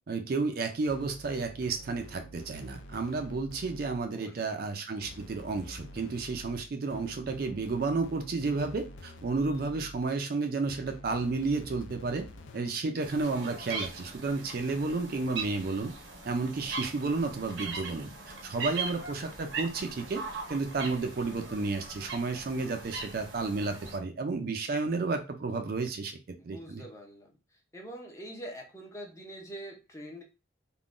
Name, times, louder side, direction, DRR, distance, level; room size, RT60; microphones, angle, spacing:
voice 1, 0.1-12.3 12.5-15.9 16.3-26.8, right 3 dB, 50° right, 6 dB, 0.4 m, -32 dB
sound 1, 0.9-4.1 5.0-10.2 10.7-12.9, left 1 dB, 75° left, 0.4 m, -48 dB
sound 2, 13.0-24.0, right 4 dB, 70° right, 0.7 m, -40 dB
voice 2, 26.4-30.2, right 1 dB, 15° left, 0 dB, 0.5 m, -44 dB
3.6 x 2.2 x 2.4 m, 0.29 s
head